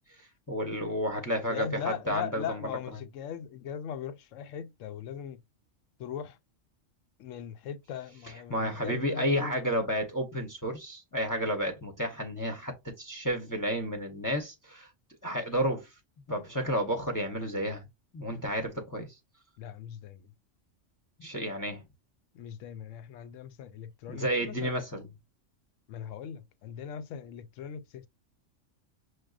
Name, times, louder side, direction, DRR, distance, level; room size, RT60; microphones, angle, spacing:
voice 1, 0.2-2.7 8.5-14.9 15.2-15.9 16.3-17.8 18.1-19.1 21.2-21.8 24.1-25.1, equal, 20° left, 0.8 m, -31 dB
voice 2, 1.5-5.4 6.0-6.4 7.2-9.7 19.6-20.3 22.3-24.8 25.9-28.1, left 8 dB, 85° left, 1.0 m, -39 dB
6.4 x 2.2 x 2.4 m
omnidirectional pair, 1.3 m